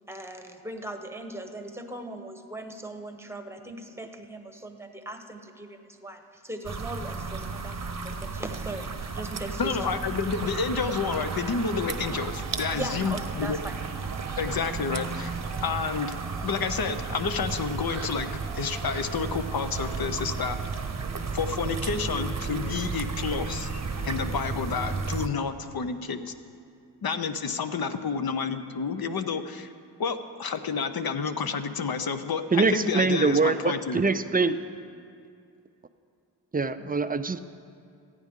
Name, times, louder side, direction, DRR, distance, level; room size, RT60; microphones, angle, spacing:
voice 1, 0.1-8.9 9.1-9.9 12.7-13.8 14.0-14.1, right 1 dB, 5° right, 5 dB, 1.0 m, -39 dB
sound 1, 6.6-25.3, right 4 dB, 40° right, 0.8 m, -33 dB
voice 2, 9.6-13.6 14.4-15.4 15.6-20.8 21.3-23.7 24.0-26.3 27.0-29.7 30.0-34.0, left 5 dB, 55° left, 9 dB, 0.7 m, -30 dB
sound 2, 11.1-24.7, right 6 dB, 80° right, 0.9 m, -44 dB
voice 3, 32.5-34.6 36.5-37.4, right 4 dB, 20° right, 11 dB, 0.4 m, -24 dB
15.5 x 9.3 x 3.7 m, 2.4 s
cardioid pair, 50°, 44 cm